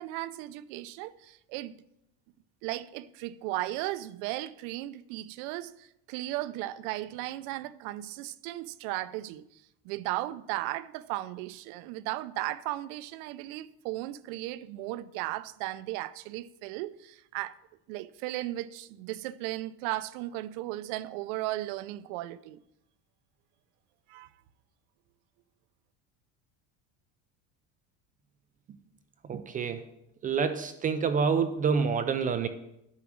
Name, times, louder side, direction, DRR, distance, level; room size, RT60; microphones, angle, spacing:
voice 1, 0.0-1.7 2.6-17.6 17.9-22.6 24.1-24.3, right 16 dB, 75° right, 0.7 m, -36 dB
voice 2, 29.3-29.8 30.2-32.5, right 6 dB, 20° right, 0.4 m, -27 dB
9.7 x 6.1 x 7.3 m
cardioid pair, 160°, 38 cm